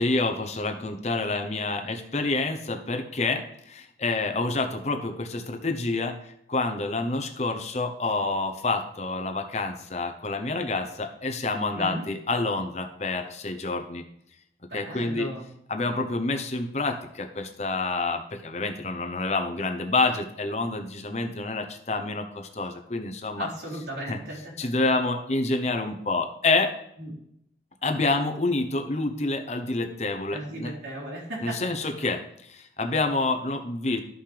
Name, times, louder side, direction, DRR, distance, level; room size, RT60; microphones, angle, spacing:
voice 1, 0.0-3.4 4.0-6.1 6.5-14.0 14.7-15.3 15.7-16.9 17.4-22.2 22.6-23.5 24.1-24.2 24.6-26.7 27.8-30.7 31.4-32.2 32.8-34.0, left 3 dB, 40° left, 5 dB, 0.8 m, -27 dB
voice 2, 11.7-12.0 14.7-15.5 23.4-24.5 27.0-27.1 30.3-31.7, right 1 dB, 75° right, -4 dB, 3.5 m, -36 dB
12.5 x 5.8 x 3.4 m, 0.73 s
head